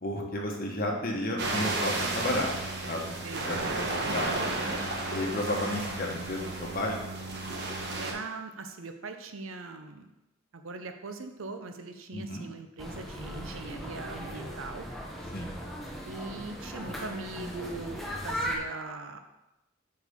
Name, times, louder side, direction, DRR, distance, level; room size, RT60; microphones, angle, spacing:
voice 1, 0.0-2.5 2.9-3.2 3.5-4.3 5.1-7.0 12.1-12.4 15.3-15.5, left 1 dB, 45° left, 0 dB, 1.2 m, -32 dB
sound 1, 1.4-8.1, right 2 dB, 55° right, 1.1 m, -33 dB
voice 2, 3.2-3.9 8.0-10.1 10.5-14.9 16.0-18.0 18.2-19.2, right 3 dB, 85° right, 7 dB, 0.7 m, -41 dB
sound 2, 12.8-18.6, equal, ahead, 0.8 m, -38 dB
8.1 x 4.5 x 3.6 m, 0.95 s
head